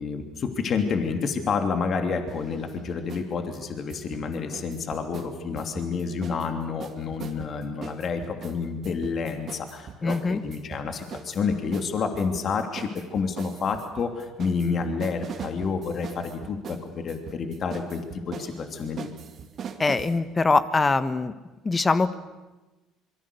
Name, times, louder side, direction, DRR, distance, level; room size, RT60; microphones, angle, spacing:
voice 1, 0.0-19.1, left 5 dB, 45° left, 5 dB, 3.0 m, -29 dB
sound 1, 2.3-3.3 3.5-6.5 6.8-20.2, right 7 dB, 50° right, 2.3 m, -41 dB
voice 2, 10.0-10.4 19.8-21.3 21.6-22.1, left 3 dB, 25° left, 13 dB, 1.4 m, -23 dB
26.5 x 23.5 x 6.9 m, 1.1 s
hypercardioid pair, 60°, 0 cm